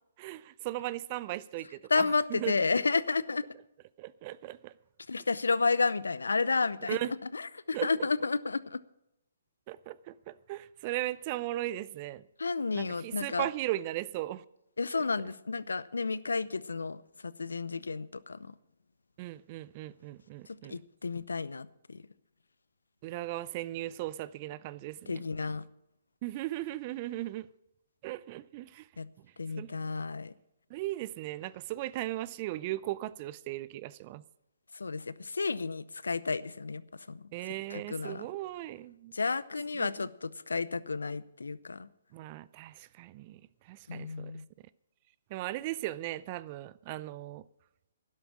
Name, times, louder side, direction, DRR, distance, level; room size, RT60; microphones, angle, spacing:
voice 1, 0.2-2.6 4.0-4.7 6.9-7.1 7.7-7.9 9.7-12.2 12.7-14.4 14.9-15.0 19.2-20.8 23.0-25.2 26.2-27.5 28.0-28.9 29.6-29.7 30.7-34.2 37.3-39.1 39.7-40.1 42.1-44.3 45.3-47.4, right 16 dB, 35° right, 0.5 m, -37 dB
voice 2, 1.9-3.4 5.1-7.0 7.3-8.8 12.4-13.5 14.8-18.5 20.7-22.0 25.1-25.6 29.0-29.1 29.4-30.3 34.7-36.8 37.1-37.2 37.7-38.3 39.1-41.9 43.9-44.5, left 4 dB, 80° left, 0.7 m, -31 dB
12.0 x 11.5 x 5.9 m
figure-of-eight pair, 130°, 0 cm